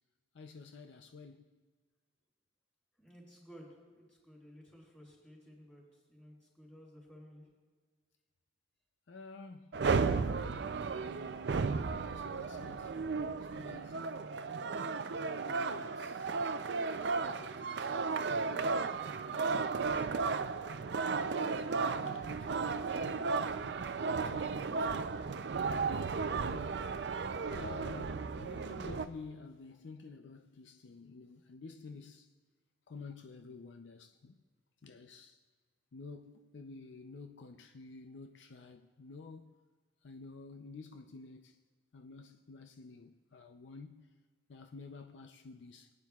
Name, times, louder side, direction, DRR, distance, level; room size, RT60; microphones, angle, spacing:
voice 1, 0.3-1.6 9.1-10.7 11.1-11.4 12.1-14.2 15.1-16.3 17.1-18.8 19.2-19.7 20.7-23.5 24.1-25.5 26.4-26.9 27.5-32.3 32.9-34.4 34.8-35.4 35.9-39.5 40.0-41.6 41.9-44.1 44.5-45.9, left 4 dB, 75° left, 0.5 m, -51 dB
voice 2, 3.0-7.4, equal, 5° left, 3.9 m, -55 dB
sound 1, 9.7-29.1, right 4 dB, 65° right, 0.5 m, -34 dB
21.5 x 9.6 x 2.4 m
head